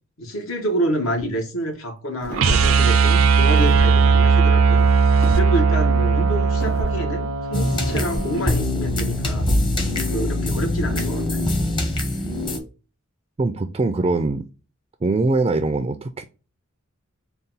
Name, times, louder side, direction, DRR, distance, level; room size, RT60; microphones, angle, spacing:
voice 1, 0.2-4.9 5.3-9.5 10.1-11.5, right 1 dB, 75° left, 1.3 m, -28 dB
sound 1, 2.2-2.8 3.5-3.9 5.2-5.5 6.6-6.9 7.9-8.3, right 1 dB, 45° left, 1.2 m, -30 dB
sound 2, 2.3-8.4, right 5 dB, 90° right, 0.5 m, -18 dB
sound 3, 7.5-12.6, left 1 dB, 25° left, 0.8 m, -23 dB
voice 2, 13.4-14.5 15.0-16.2, right 3 dB, 25° right, 0.3 m, -22 dB
3.9 x 2.3 x 3.8 m
head